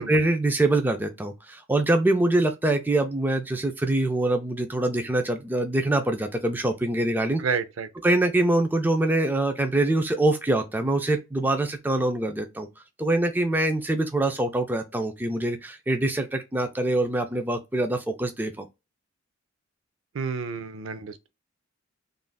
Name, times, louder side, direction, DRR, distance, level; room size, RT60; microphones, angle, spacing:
voice 1, 0.0-7.4 8.0-12.7 13.0-18.7, right 2 dB, 10° right, 0.3 m, -24 dB
voice 2, 7.4-7.9 20.1-21.3, right 5 dB, 70° right, 0.5 m, -30 dB
3.3 x 2.5 x 2.2 m
head